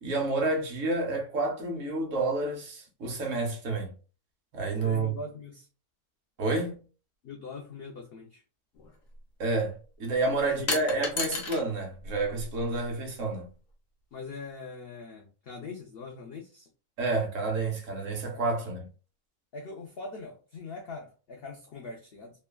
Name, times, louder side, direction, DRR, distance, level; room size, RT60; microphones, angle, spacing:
voice 1, 0.0-3.9 4.5-5.1 6.4-6.8 9.4-13.5 17.0-18.9, right 3 dB, 60° right, 1.1 m, -29 dB
voice 2, 4.8-5.7 7.2-8.4 10.4-11.0 14.1-16.7 18.2-18.4 19.5-22.3, left 4 dB, 85° left, 0.5 m, -42 dB
sound 1, 8.7-8.9 10.7-11.6 12.0-12.8, left 4 dB, 65° left, 1.1 m, -33 dB
3.0 x 2.2 x 2.2 m
omnidirectional pair, 1.6 m